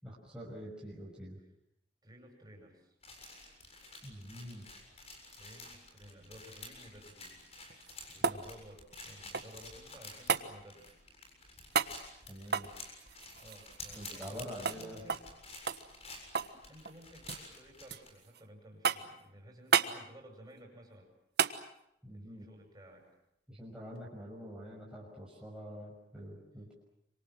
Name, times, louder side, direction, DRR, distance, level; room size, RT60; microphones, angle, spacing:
voice 1, 0.0-1.4 4.0-4.7 8.2-8.4 12.3-12.7 13.9-15.0 22.0-22.5 23.5-26.7, equal, 5° right, -5 dB, 6.0 m, -46 dB
voice 2, 2.0-3.0 5.3-7.4 8.1-10.9 13.4-15.2 16.7-21.1 22.1-23.1, equal, 20° right, 2 dB, 7.8 m, -55 dB
sound 1, 3.0-18.1, left 2 dB, 35° left, 7.3 m, -51 dB
sound 2, 7.6-9.7 10.3-10.5 11.7-12.0 12.4-14.4 14.7-14.8 15.1-15.3 15.7-16.6 16.8-17.5 17.9-18.4 18.8-19.2 19.7-20.0 21.4-21.6 24.0-24.1, right 6 dB, 65° right, 1.4 m, -32 dB
27.5 x 25.5 x 7.7 m, 0.81 s
head